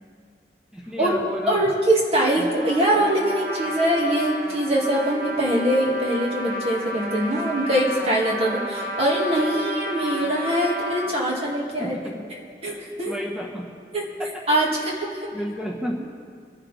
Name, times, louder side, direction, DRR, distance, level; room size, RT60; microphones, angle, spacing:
voice 1, 0.7-1.6 2.3-2.5 11.8-12.2 13.1-13.7 14.2-14.3 15.3-16.0, equal, 5° right, -1 dB, 1.5 m, -32 dB
voice 2, 1.5-12.0 12.6-13.1 13.9-14.1 14.5-15.3, right 1 dB, 35° right, -3 dB, 2.3 m, -23 dB
Trumpet, 2.6-11.1, equal, 55° right, 1.4 m, -31 dB
25.0 x 10.5 x 3.6 m, 2.1 s
head